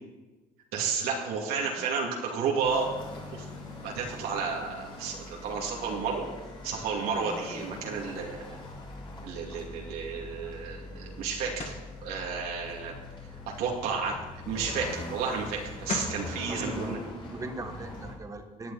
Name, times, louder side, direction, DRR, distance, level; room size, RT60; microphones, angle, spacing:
voice 1, 0.7-2.9 3.3-3.4 3.8-6.2 6.6-8.5 9.2-11.6 12.0-13.0 13.6-14.1 14.5-17.0, right 5 dB, 75° right, -2 dB, 2.6 m, -32 dB
sound 1, 2.6-18.1, left 2 dB, 30° left, 4.1 m, -42 dB
sound 2, 11.6-11.9 15.5-15.6 15.9-16.2, left 4 dB, 45° left, 1.9 m, -34 dB
voice 2, 16.5-18.7, right 2 dB, 20° right, 6 dB, 1.5 m, -39 dB
17.5 x 10.5 x 4.2 m, 1.2 s
cardioid pair, 130°, 16 cm